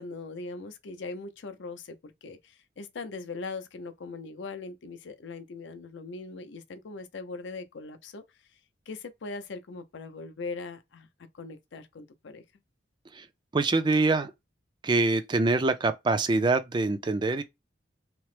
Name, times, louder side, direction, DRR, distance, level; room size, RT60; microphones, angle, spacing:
voice 1, 0.0-8.2 8.5-8.6 8.9-11.1 11.4-12.4, left 3 dB, 70° left, 0.5 m, -40 dB
voice 2, 13.5-14.3 14.8-17.4, right 3 dB, 25° right, 0.3 m, -25 dB
2.9 x 2.0 x 3.1 m
head